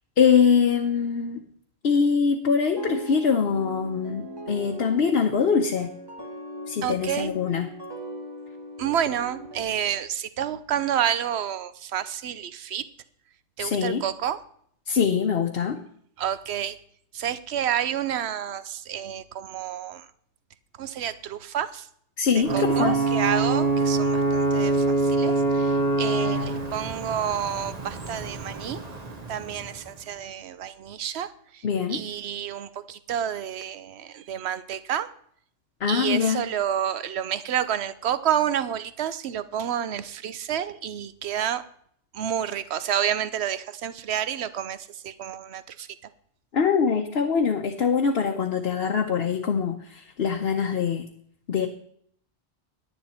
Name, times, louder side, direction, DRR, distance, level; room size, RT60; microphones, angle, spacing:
voice 1, 0.2-1.4 1.8-5.9 6.7-7.7 13.6-14.0 14.9-15.8 22.2-23.0 31.6-32.0 35.8-36.4 46.5-51.0 51.5-51.7, left 6 dB, 65° left, 3 dB, 1.0 m, -23 dB
sound 1, 2.8-9.6, right 1 dB, 20° right, 1.4 m, -39 dB
voice 2, 6.8-7.3 8.8-12.8 13.6-14.4 16.2-16.8 17.1-20.0 20.8-21.9 22.3-28.8 29.3-31.6 31.9-35.1 35.9-41.6 42.1-45.9, right 9 dB, 70° right, 14 dB, 1.0 m, -29 dB
Ocean / Boat Water vehicle / Alarm, 22.4-30.0, right 3 dB, 35° right, 1.3 m, -25 dB
10.5 x 10.0 x 4.3 m, 0.64 s
omnidirectional pair, 1.1 m